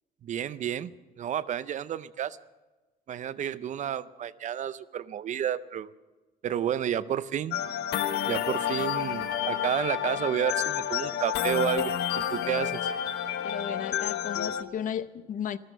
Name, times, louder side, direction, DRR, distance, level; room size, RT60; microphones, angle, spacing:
voice 1, 0.2-0.9 1.2-2.4 3.1-5.9 6.4-7.6 8.2-12.9, right 9 dB, 45° right, 0.6 m, -31 dB
sound 1, 7.5-14.6, left 9 dB, 80° left, 1.0 m, -30 dB
voice 2, 13.4-15.6, left 9 dB, 50° left, 0.7 m, -34 dB
14.0 x 12.5 x 8.0 m
cardioid pair, 110°, 17 cm